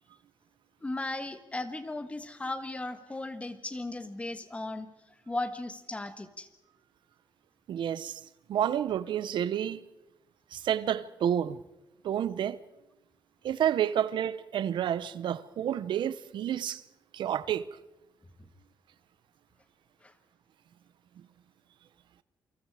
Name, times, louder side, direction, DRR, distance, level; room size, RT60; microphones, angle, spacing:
voice 1, 0.8-4.9 5.3-6.5 20.0-20.1, left 2 dB, 15° left, 1.6 m, -36 dB
voice 2, 7.7-8.2 8.5-9.8 10.5-11.6 12.0-12.6 13.4-16.8 17.1-17.7, right 10 dB, 80° right, 0.8 m, -29 dB
28.0 x 25.5 x 4.9 m
wide cardioid pair, 145°, 8 cm